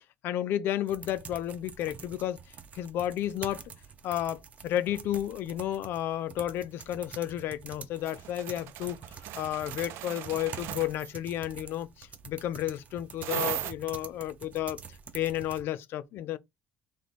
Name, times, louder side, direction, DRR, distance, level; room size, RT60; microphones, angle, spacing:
voice 1, 0.0-2.4 2.7-3.6 4.0-9.0 9.4-14.8 15.1-16.4, left 12 dB, 65° left, 0.5 m, -32 dB
sound 1, 0.9-15.6, right 6 dB, 35° right, 0.8 m, -47 dB
sound 2, 8.1-11.1 13.2-13.7, right 14 dB, 75° right, 0.4 m, -37 dB
3.2 x 3.2 x 4.1 m
cardioid pair, 130°, 4 cm